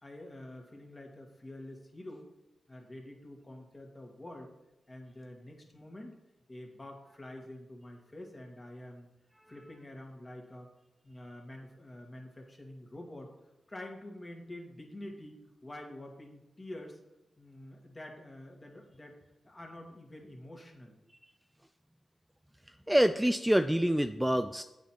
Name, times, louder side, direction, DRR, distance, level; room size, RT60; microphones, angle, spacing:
voice 1, 0.0-2.3 2.7-4.5 4.9-6.2 6.5-9.1 9.5-10.7 11.0-13.3 13.7-17.0 17.4-19.2 19.4-20.9, left 1 dB, 30° left, 1 dB, 1.7 m, -47 dB
voice 2, 22.7-24.6, equal, 5° right, 8 dB, 0.3 m, -26 dB
8.0 x 4.3 x 4.4 m, 0.94 s
supercardioid pair, 45°, 0 cm